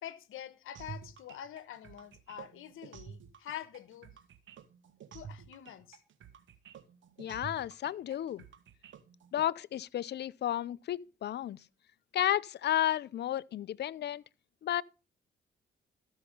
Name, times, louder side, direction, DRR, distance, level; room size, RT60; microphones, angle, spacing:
voice 1, 0.0-4.1 5.1-6.0, left 11 dB, 75° left, 1.2 m, -46 dB
sound 1, 0.7-9.4, right 7 dB, 70° right, 1.6 m, -49 dB
voice 2, 7.2-8.4 9.3-11.6 12.1-14.2 14.6-14.8, left 12 dB, 55° left, 0.5 m, -32 dB
13.5 x 5.6 x 5.3 m
cardioid pair, 75°, 21 cm